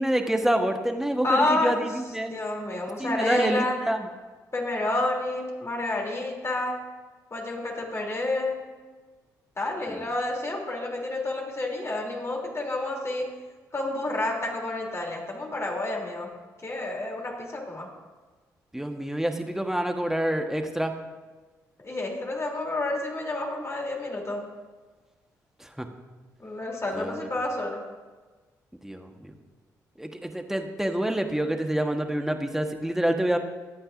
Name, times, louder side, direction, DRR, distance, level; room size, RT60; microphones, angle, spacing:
voice 1, 0.0-2.4 3.0-4.1 9.9-10.1 18.7-20.9 25.6-25.9 26.9-27.3 28.8-29.3 30.0-33.4, right 1 dB, 5° right, 5 dB, 1.4 m, -27 dB
voice 2, 1.2-1.8 2.3-3.8 4.5-6.8 7.3-8.6 9.6-13.3 13.7-16.3 16.6-17.9 21.8-24.5 26.4-27.8, left 2 dB, 30° left, -1 dB, 3.3 m, -29 dB
22.0 x 8.6 x 2.6 m, 1.3 s
hypercardioid pair, 45°, 9 cm